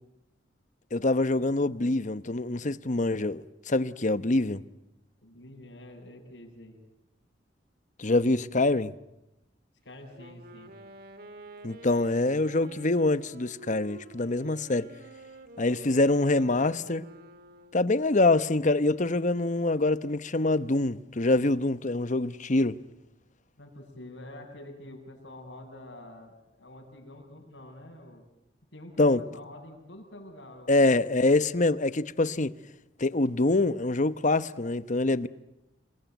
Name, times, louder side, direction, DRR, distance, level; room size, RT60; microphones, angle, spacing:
voice 1, 0.9-4.6 8.0-8.9 11.6-14.9 15.6-17.0 17.7-22.8 29.0-29.2 30.7-32.5 33.0-35.3, left 2 dB, 45° left, 1.0 m, -25 dB
voice 2, 5.2-6.8 9.8-10.7 23.6-28.3 28.7-31.0, left 1 dB, 85° left, 8.0 m, -47 dB
Wind instrument woodwind instrument, 10.1-18.0, right 2 dB, 55° right, 2.5 m, -49 dB
29.0 x 22.0 x 9.2 m
head